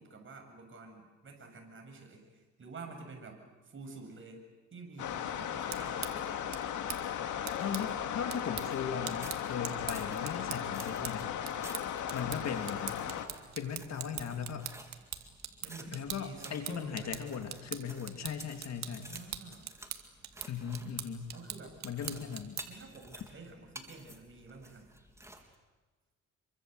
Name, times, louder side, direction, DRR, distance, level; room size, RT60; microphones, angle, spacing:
voice 1, 0.0-3.4 3.6-6.2 15.6-17.2 18.7-19.7 21.3-21.8 22.1-22.2 22.7-24.9, right 3 dB, 40° right, 3 dB, 7.3 m, -49 dB
sound 1, 5.0-13.3, left 9 dB, 80° left, 2.4 m, -36 dB
sound 2, 5.5-22.9, right 9 dB, 65° right, 2.4 m, -44 dB
voice 2, 7.6-11.8 12.1-13.1 13.6-14.6 15.9-19.1 20.5-21.3 21.8-22.6, left 7 dB, 60° left, 6 dB, 3.0 m, -38 dB
sound 3, 8.9-25.5, right 1 dB, 10° right, 3.6 m, -53 dB
27.0 x 23.5 x 8.1 m, 1.2 s
cardioid pair, 90°, 30 cm